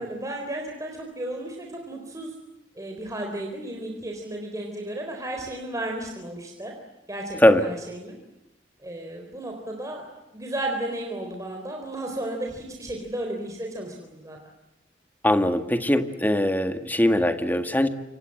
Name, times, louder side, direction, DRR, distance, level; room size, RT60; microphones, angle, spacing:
voice 1, 0.0-2.3 2.8-6.7 7.1-8.2 8.8-10.1 10.3-14.4, right 1 dB, 20° right, 1 dB, 4.1 m, -33 dB
voice 2, 15.2-17.9, left 1 dB, 10° left, 7 dB, 1.9 m, -21 dB
28.0 x 25.5 x 7.9 m, 0.97 s
head